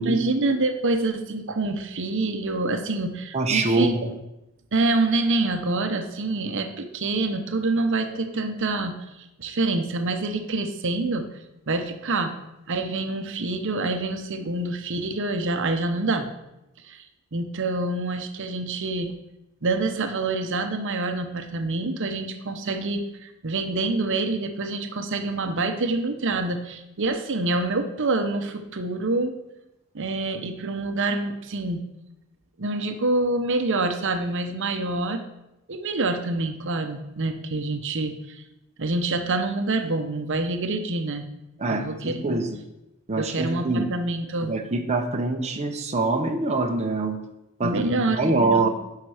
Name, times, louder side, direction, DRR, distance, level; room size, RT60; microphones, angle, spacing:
voice 1, 0.0-4.0 4.7-11.3 11.7-12.4 12.7-16.3 16.8-17.1 17.3-19.1 19.6-29.3 29.9-31.9 32.6-35.2 35.7-38.4 38.8-41.3 41.7-42.4 43.2-44.6 47.6-48.7, right 2 dB, 60° right, 6 dB, 0.8 m, -26 dB
voice 2, 3.3-4.1 41.6-42.5 43.1-43.9 44.5-47.2 47.6-48.7, right 2 dB, 30° right, 3 dB, 0.8 m, -24 dB
10.5 x 5.8 x 4.9 m, 0.93 s
head